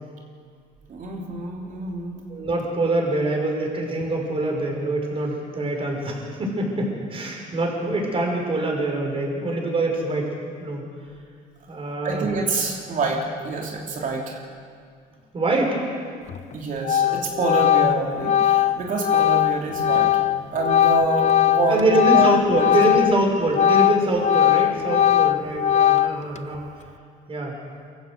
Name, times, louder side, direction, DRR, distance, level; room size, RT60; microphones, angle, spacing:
voice 1, 0.9-2.3 12.0-14.4 16.5-20.2 20.5-22.7, right 3 dB, 50° right, 0 dB, 3.3 m, -27 dB
voice 2, 2.3-10.3 10.6-10.9 11.7-12.3 15.3-15.8 21.7-26.7 27.3-27.5, right 2 dB, 35° right, 0 dB, 5.8 m, -24 dB
Organ, 16.3-16.5 16.8-23.2 23.5-26.4, left 11 dB, 40° left, 0.6 m, -20 dB
24.0 x 14.5 x 8.1 m, 2.2 s
cardioid pair, 110°, 17 cm